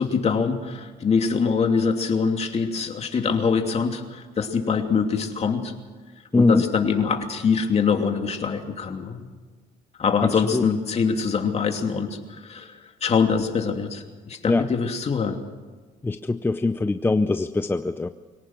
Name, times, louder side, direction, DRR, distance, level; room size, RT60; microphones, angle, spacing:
voice 1, 0.0-5.7 6.3-9.3 10.0-12.8 13.0-15.4, left 5 dB, 40° left, 4 dB, 2.8 m, -24 dB
voice 2, 6.3-6.6 10.2-10.7 14.5-14.7 16.0-18.1, left 3 dB, 15° left, 9 dB, 0.6 m, -22 dB
23.5 x 18.0 x 6.3 m, 1.4 s
cardioid pair, 110°, 17 cm